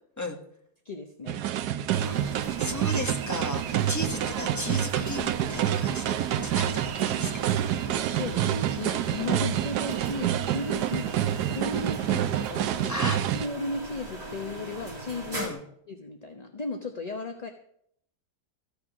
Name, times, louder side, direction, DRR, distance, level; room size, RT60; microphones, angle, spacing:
voice 1, 0.8-1.4 7.9-15.5 15.9-17.5, left 3 dB, 30° left, 4 dB, 0.8 m, -36 dB
sound 1, 1.3-13.5, right 11 dB, 75° right, 1.2 m, -28 dB
sound 2, 1.9-15.5, right 2 dB, 40° right, 3.3 m, -40 dB
voice 2, 2.0-7.3 7.8-8.0 12.9-13.2 15.3-15.6, left 1 dB, 10° left, 3 dB, 1.4 m, -35 dB
15.0 x 8.5 x 6.1 m, 0.70 s
omnidirectional pair, 1.8 m